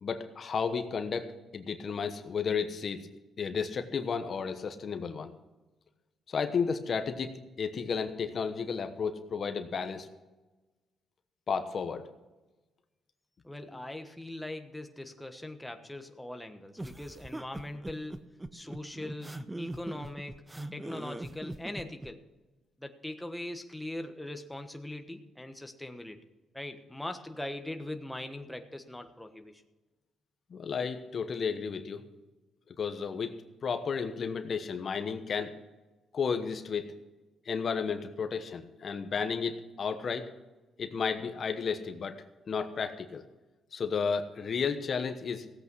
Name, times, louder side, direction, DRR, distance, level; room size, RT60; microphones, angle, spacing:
voice 1, 0.0-3.0 3.4-5.3 6.3-10.1 11.5-12.0 30.5-32.0 32.8-33.3 33.6-35.6 36.1-37.0 37.5-40.3 40.8-42.2 42.5-43.2 43.7-45.4, left 6 dB, 50° left, 7 dB, 1.1 m, -33 dB
voice 2, 13.4-20.4 20.7-22.2 22.8-26.2 26.5-29.6, left 1 dB, 5° left, 6 dB, 1.3 m, -41 dB
sound 1, 16.8-22.1, right 1 dB, 15° right, 0.8 m, -41 dB
16.5 x 8.4 x 6.2 m, 1.1 s
cardioid pair, 90°, 0 cm